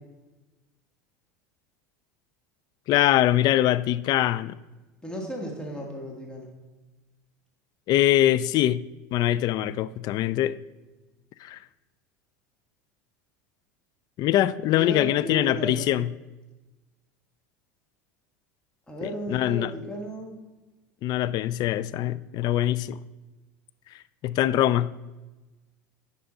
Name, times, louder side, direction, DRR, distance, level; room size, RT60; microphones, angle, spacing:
voice 1, 2.9-4.5 7.9-8.8 9.1-10.6 11.4-11.6 14.2-16.1 19.0-19.7 21.0-23.0 24.2-24.9, left 13 dB, 45° left, 0.3 m, -23 dB
voice 2, 5.0-6.5 14.7-15.9 18.9-20.4, equal, 10° left, 1.6 m, -34 dB
10.0 x 5.6 x 3.8 m
hypercardioid pair, 80°, 9 cm